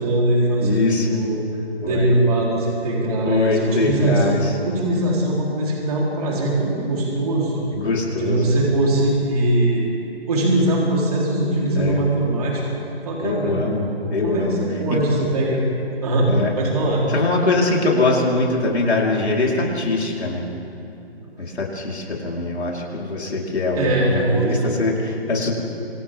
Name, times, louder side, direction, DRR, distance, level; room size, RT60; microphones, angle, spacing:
voice 1, 0.0-1.4 1.8-4.3 4.6-7.6 8.2-9.9 10.3-12.6 13.1-13.6 14.2-15.6 16.0-17.0 21.2-21.3 23.8-24.6, right 1 dB, 35° right, -4 dB, 4.1 m, -21 dB
voice 2, 0.6-1.2 1.8-2.1 3.2-4.6 7.7-8.5 11.8-12.0 13.2-14.6 14.9-15.0 16.3-16.5 17.1-20.4 21.4-25.5, left 3 dB, 80° left, -3 dB, 4.7 m, -22 dB
27.5 x 26.0 x 3.8 m, 2.8 s
hypercardioid pair, 165°, 32 cm